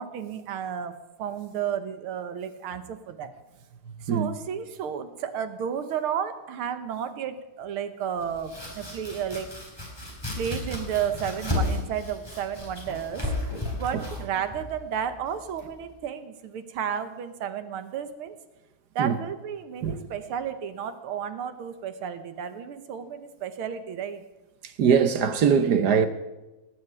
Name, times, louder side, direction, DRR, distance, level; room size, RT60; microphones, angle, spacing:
voice 1, 0.0-3.3 4.0-9.5 10.4-13.3 13.7-18.4 19.0-24.2, right 8 dB, 90° right, 2.0 m, -32 dB
Domestic sounds home sounds, 8.2-15.9, left 2 dB, 10° left, 3.9 m, -34 dB
voice 2, 24.8-26.1, right 7 dB, 60° right, 1.3 m, -21 dB
18.0 x 6.6 x 9.2 m
omnidirectional pair, 2.3 m